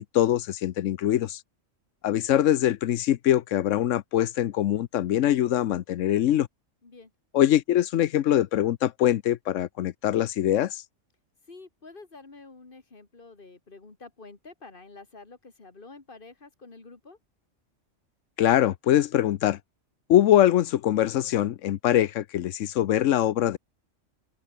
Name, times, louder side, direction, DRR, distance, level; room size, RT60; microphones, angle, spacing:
voice 1, 0.0-1.4 2.0-6.5 7.3-10.8 18.4-19.6 20.1-23.6, left 12 dB, 75° left, 1.0 m, -23 dB
voice 2, 11.5-17.2, left 3 dB, 40° left, 2.4 m, -48 dB
open air
omnidirectional pair, 1.3 m